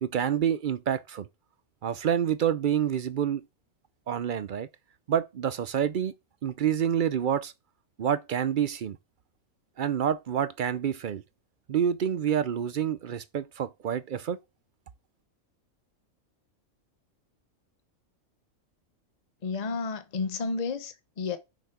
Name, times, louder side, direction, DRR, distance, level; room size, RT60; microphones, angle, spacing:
voice 1, 0.0-1.3 1.8-3.4 4.1-4.7 5.1-6.1 6.4-7.5 8.0-9.0 9.8-11.2 11.7-14.4, right 9 dB, 55° right, 0.5 m, -27 dB
voice 2, 19.4-21.4, left 4 dB, 35° left, 0.9 m, -31 dB
6.6 x 6.0 x 5.9 m
omnidirectional pair, 1.4 m